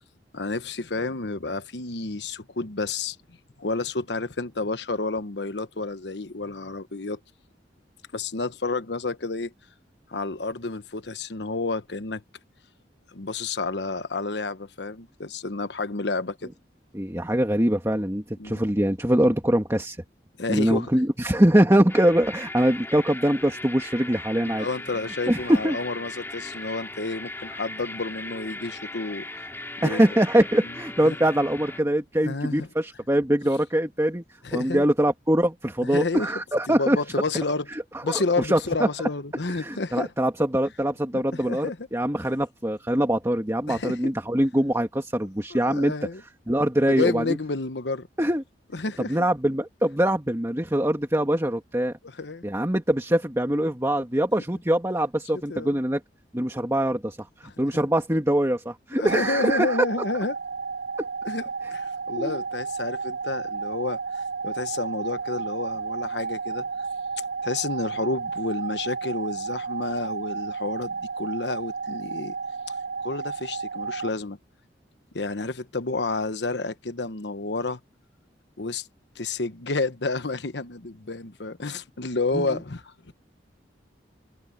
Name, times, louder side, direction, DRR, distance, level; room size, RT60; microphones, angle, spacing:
voice 1, 0.3-3.2 3.6-7.2 8.1-9.5 10.1-12.2 13.1-16.5 18.4-18.6 20.4-20.9 24.4-29.5 29.8-30.1 30.6-30.7 31.0-31.2 32.2-32.7 34.4-34.8 35.8-36.3 36.7-37.7 38.0-40.1 41.3-41.9 43.7-44.1 45.5-46.2 46.9-48.1 48.7-49.2 52.0-52.4 55.5-55.8 57.4-57.5 59.0-60.4 61.2-64.0 64.4-66.6 67.4-72.3 73.0-74.4 75.1-77.8 78.6-78.9 79.1-83.1, left 3 dB, 80° left, 1.2 m, -30 dB
voice 2, 16.9-20.0 20.5-24.7 25.3-25.8 29.8-34.2 34.5-37.0 37.7-39.1 39.6-45.9 46.5-47.3 48.2-48.4 49.1-51.9 52.4-56.0 56.3-59.8 62.1-62.4 82.3-82.5, right 1 dB, 15° right, 2.0 m, -23 dB
sound 1, 21.9-31.8, left 2 dB, 15° left, 2.4 m, -38 dB
sound 2, 59.1-74.1, right 5 dB, 75° right, 4.6 m, -32 dB
head